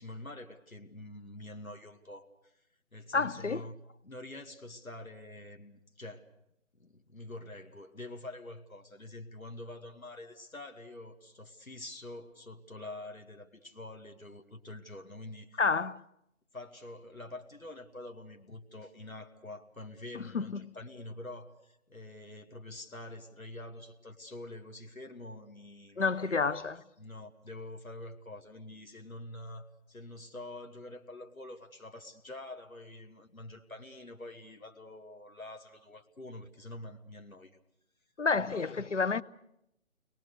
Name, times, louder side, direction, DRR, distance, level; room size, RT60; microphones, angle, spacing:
voice 1, 0.0-2.5 2.9-6.3 6.8-15.6 16.5-26.7 27.0-37.6 38.3-38.8, left 2 dB, 80° left, 2.4 m, -46 dB
voice 2, 3.1-3.6 15.6-16.0 20.1-20.6 26.0-26.7 38.2-39.2, left 4 dB, 60° left, 0.9 m, -29 dB
30.0 x 21.5 x 6.6 m
figure-of-eight pair, 155°, 41 cm